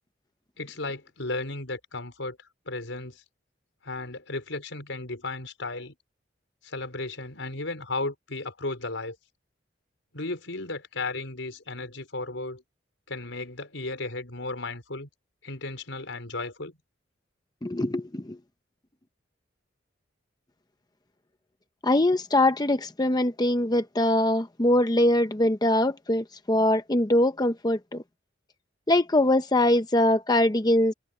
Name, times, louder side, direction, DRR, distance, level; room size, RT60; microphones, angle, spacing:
voice 1, 0.6-2.4 2.7-3.2 3.8-5.9 6.6-9.2 10.1-12.6 13.1-15.1 15.4-16.8, left 2 dB, 85° left, 4.7 m, -34 dB
voice 2, 17.6-18.4 21.8-28.0 28.9-30.9, left 1 dB, 20° left, 0.8 m, -23 dB
head